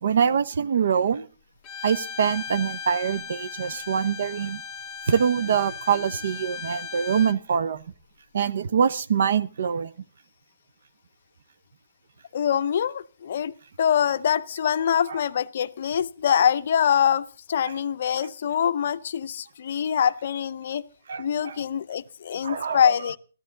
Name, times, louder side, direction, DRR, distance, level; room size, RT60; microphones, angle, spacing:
voice 1, 0.0-1.3 1.8-4.6 5.1-7.8 8.3-9.9 17.6-17.7 21.1-21.6 22.4-22.9, right 7 dB, 65° right, 0.7 m, -24 dB
Bowed string instrument, 1.6-7.4, left 6 dB, 20° left, 0.7 m, -37 dB
voice 2, 12.3-20.8 21.2-23.2, left 8 dB, 55° left, 0.6 m, -24 dB
14.0 x 13.5 x 3.9 m
hypercardioid pair, 155°, 0 cm